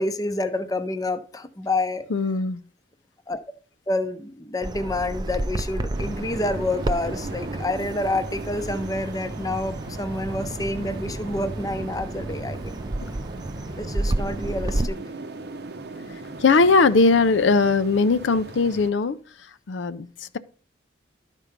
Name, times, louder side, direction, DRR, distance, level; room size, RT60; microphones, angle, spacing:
voice 1, 0.0-2.1 3.3-3.4 3.9-12.8 13.8-15.0, left 2 dB, 20° left, 0.6 m, -28 dB
voice 2, 2.1-2.6 16.4-19.2 19.7-20.4, left 4 dB, 80° left, 0.5 m, -19 dB
Bird vocalization bird call bird song, 4.6-14.9, right 1 dB, 25° right, 0.4 m, -31 dB
sound 1, 5.9-18.9, right 3 dB, 60° right, 0.7 m, -39 dB
12.0 x 4.5 x 5.1 m
head